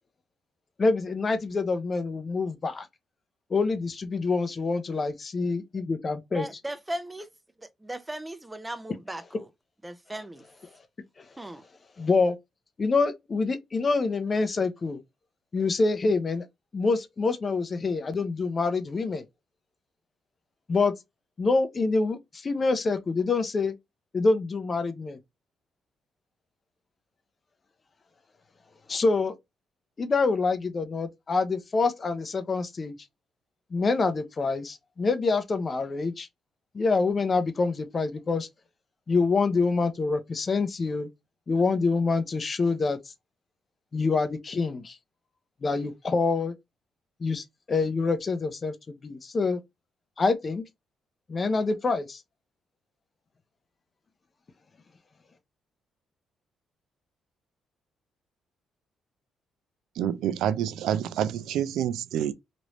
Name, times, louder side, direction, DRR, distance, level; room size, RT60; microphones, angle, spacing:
voice 1, 0.8-2.9 3.5-6.5 12.0-12.4 12.8-15.0 15.5-16.4 16.7-19.2 20.7-20.9 21.4-23.7 24.1-25.2 28.9-29.3 30.0-33.0 33.7-36.3 36.7-38.5 39.1-41.1 41.5-43.0 43.9-45.0 45.6-46.5 47.2-49.6 50.2-50.6 51.3-52.2, left 4 dB, 35° left, 0.5 m, -26 dB
voice 2, 6.3-7.3 7.8-9.5 9.8-10.4 11.4-11.6, right 1 dB, 10° right, 0.5 m, -37 dB
voice 3, 60.0-62.3, right 10 dB, 85° right, 0.3 m, -27 dB
3.1 x 2.5 x 2.9 m
cardioid pair, 90°, 0 cm